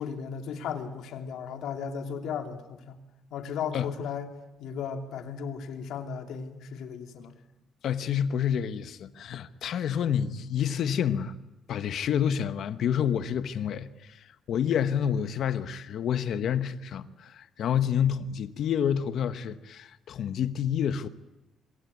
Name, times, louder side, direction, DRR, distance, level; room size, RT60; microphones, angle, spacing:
voice 1, 0.0-3.0 3.3-4.3 4.6-7.4, left 7 dB, 70° left, 2.8 m, -35 dB
voice 2, 7.8-11.3 11.7-21.1, left 8 dB, 55° left, 1.2 m, -28 dB
26.5 x 23.0 x 9.6 m
cardioid pair, 160°, 0 cm